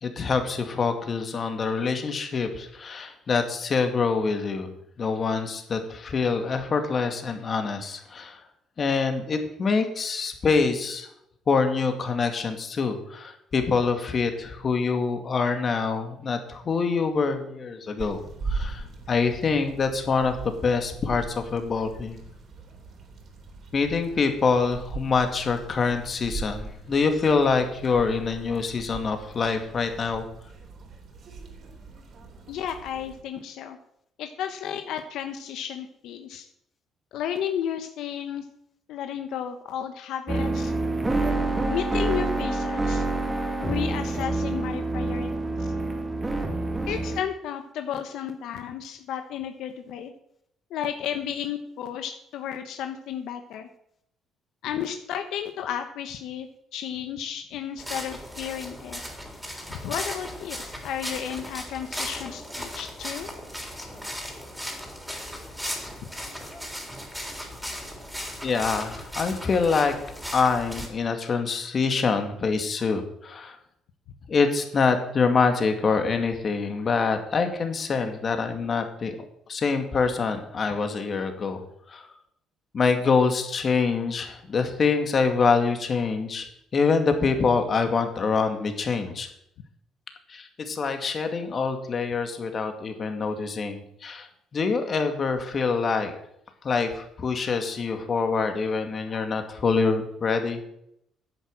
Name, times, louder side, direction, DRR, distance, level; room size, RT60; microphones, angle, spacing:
voice 1, 0.0-4.7 5.0-8.4 8.8-11.1 11.5-22.2 23.7-30.3 68.4-73.6 74.3-79.2 79.5-81.6 81.9-82.1 82.7-86.5 86.7-89.3 90.3-94.3 94.5-96.1 96.6-100.6, left 4 dB, 40° left, 6 dB, 2.2 m, -25 dB
sound 1, 18.0-33.2, right 4 dB, 50° right, 3.5 m, -40 dB
voice 2, 32.5-33.8 34.2-36.5 37.1-38.5 38.9-40.7 41.7-43.1 43.6-45.3 45.6-45.7 46.9-50.1 50.7-53.7 54.6-59.0 59.7-63.3 66.0-66.1, left 9 dB, 80° left, 7 dB, 1.1 m, -33 dB
sound 2, 40.3-47.2, right 2 dB, 15° right, 2.1 m, -27 dB
sound 3, 57.8-70.9, equal, ahead, 3.7 m, -37 dB
10.5 x 8.5 x 7.6 m, 0.75 s
cardioid pair, 95°, 0 cm